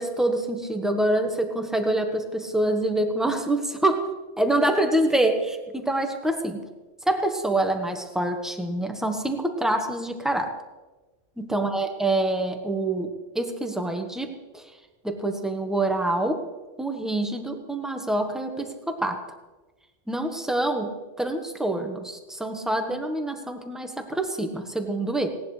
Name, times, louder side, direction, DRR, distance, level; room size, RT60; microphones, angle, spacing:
voice 1, 0.0-6.6 7.0-10.5 11.4-14.7 15.0-16.4 16.8-19.2 20.1-25.3, right 1 dB, ahead, 4 dB, 1.3 m, -26 dB
18.5 x 18.0 x 3.4 m, 1.2 s
omnidirectional pair, 1.2 m